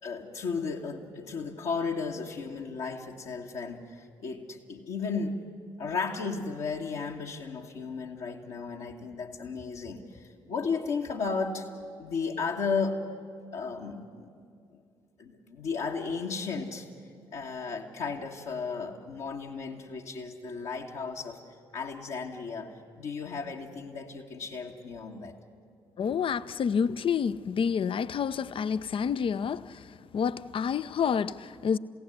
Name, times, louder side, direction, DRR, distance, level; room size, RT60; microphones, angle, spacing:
voice 1, 0.0-5.4 5.8-11.7 12.0-13.0 13.5-14.3 14.7-14.8 15.2-16.9 17.3-21.4 21.7-25.4, left 5 dB, 60° left, 1.6 m, -34 dB
voice 2, 26.0-31.8, left 7 dB, 40° left, 0.6 m, -29 dB
30.0 x 16.5 x 8.1 m
figure-of-eight pair, 40°, 13 cm